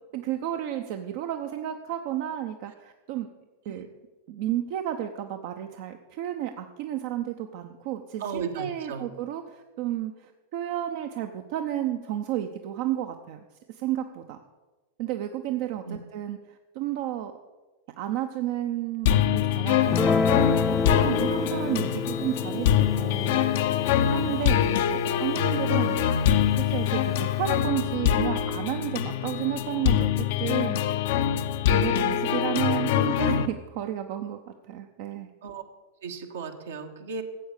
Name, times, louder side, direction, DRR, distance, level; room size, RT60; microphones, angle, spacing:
voice 1, 0.1-3.3 3.7-3.9 4.3-13.4 13.7-14.4 15.0-16.4 16.7-17.3 18.0-20.3 20.9-23.4 24.0-26.0 26.6-31.0 31.7-34.4 34.7-35.3, right 12 dB, 55° right, 6 dB, 0.8 m, -32 dB
voice 2, 8.2-9.1 15.8-16.0 24.2-24.7 35.4-35.6 36.0-37.2, right 5 dB, 75° right, 4 dB, 1.5 m, -35 dB
sound 1, 19.1-33.5, left 9 dB, 60° left, 0.8 m, -24 dB
Guitar, 19.9-26.5, left 4 dB, 15° left, 0.4 m, -30 dB
13.0 x 8.0 x 6.6 m, 1.2 s
figure-of-eight pair, 95°, 0 cm